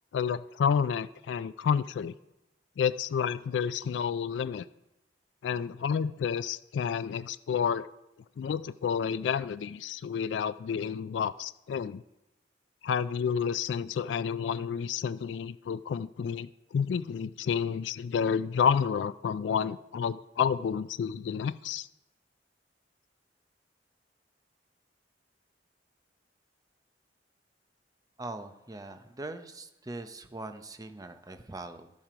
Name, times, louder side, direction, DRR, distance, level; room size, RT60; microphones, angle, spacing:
voice 1, 0.1-2.1 2.8-4.7 5.4-7.9 8.4-12.0 12.8-21.9, left 7 dB, 75° left, 14 dB, 0.3 m, -30 dB
voice 2, 28.2-31.9, right 2 dB, 20° right, 8 dB, 0.6 m, -42 dB
12.5 x 7.4 x 5.0 m, 0.93 s
head